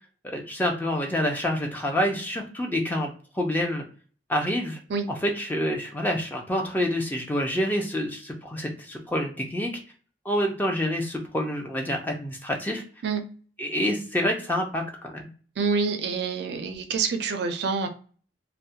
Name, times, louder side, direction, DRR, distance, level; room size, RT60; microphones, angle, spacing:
voice 1, 0.3-3.8 4.3-4.8 5.2-9.7 10.3-12.8 13.6-15.3, equal, 10° left, 1 dB, 0.4 m, -27 dB
voice 2, 15.6-17.9, right 5 dB, 65° right, 7 dB, 0.4 m, -27 dB
2.3 x 2.1 x 2.7 m, 0.41 s
head